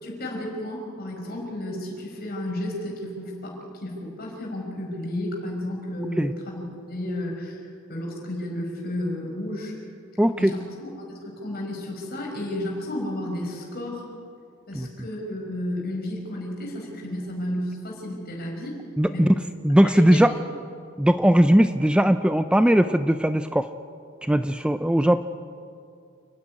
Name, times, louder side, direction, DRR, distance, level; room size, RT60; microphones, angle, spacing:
voice 1, 0.0-7.6 7.9-9.7 10.4-14.1 14.7-18.8 19.1-19.3 19.8-20.2, left 1 dB, 50° left, -1 dB, 5.7 m, -32 dB
voice 2, 10.2-10.6 14.7-14.9 19.0-19.3 19.6-20.3 21.0-23.7 24.2-25.2, equal, 5° right, 10 dB, 0.4 m, -19 dB
29.0 x 10.0 x 9.8 m, 2.4 s
head